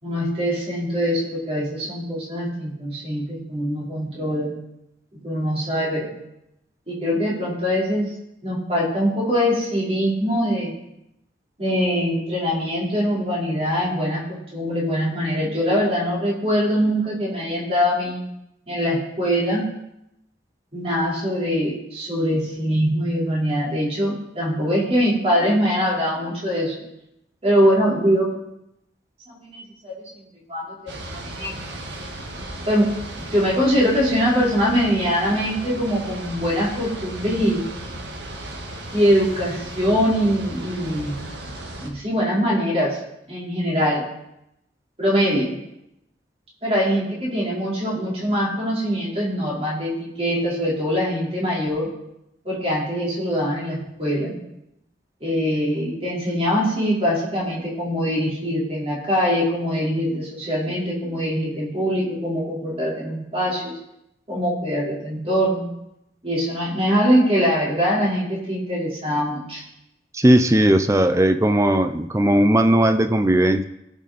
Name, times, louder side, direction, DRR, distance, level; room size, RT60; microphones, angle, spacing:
voice 1, 0.0-4.6 5.2-6.1 6.9-8.1 8.4-10.8 11.6-18.2 18.7-19.7 20.7-26.7 27.4-28.3 29.3-29.9 30.5-31.5 32.7-32.9 33.2-37.6 38.9-41.1 41.8-43.0 43.3-44.0 45.0-45.5 46.6-51.9 52.4-54.4 55.2-63.7 64.3-65.7 66.2-69.6, equal, 35° right, -5 dB, 4.2 m, -23 dB
sound 1, 30.9-41.9, right 1 dB, 90° right, 1.9 m, -35 dB
voice 2, 70.1-73.6, right 1 dB, 15° right, 8 dB, 0.6 m, -17 dB
18.0 x 6.5 x 4.2 m, 0.83 s
head